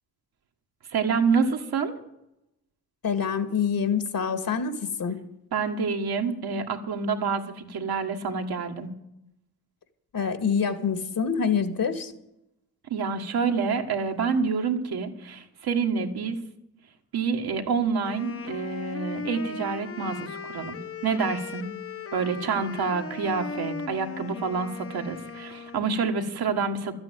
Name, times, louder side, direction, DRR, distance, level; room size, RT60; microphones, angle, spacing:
voice 1, 0.9-2.0 5.5-8.9 12.9-16.4 17.1-21.7 22.1-26.9, right 5 dB, 75° right, 3 dB, 1.7 m, -27 dB
voice 2, 3.0-5.2 10.1-12.1, left 6 dB, 60° left, 10 dB, 1.9 m, -26 dB
Wind instrument woodwind instrument, 18.0-25.9, left 4 dB, 35° left, 0.8 m, -38 dB
13.0 x 8.8 x 9.1 m, 0.85 s
cardioid pair, 60°, 38 cm